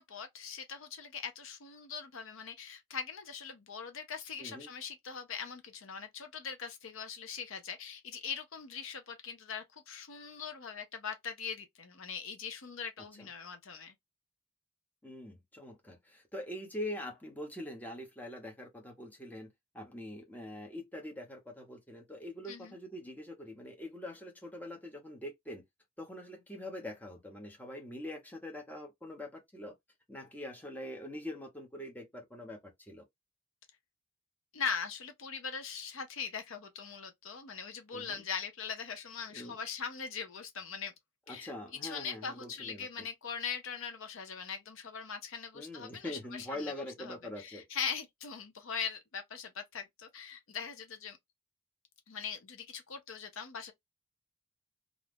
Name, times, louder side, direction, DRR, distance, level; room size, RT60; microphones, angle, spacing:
voice 1, 0.0-13.9 22.5-22.8 34.5-40.9 41.3-41.5 41.8-51.2 52.1-53.7, left 6 dB, 60° left, 0.6 m, -41 dB
voice 2, 15.0-25.6 26.0-29.7 30.1-33.0 37.9-38.2 39.3-39.6 41.3-43.1 45.5-47.6, left 1 dB, 5° left, 0.8 m, -44 dB
2.5 x 2.3 x 3.3 m
head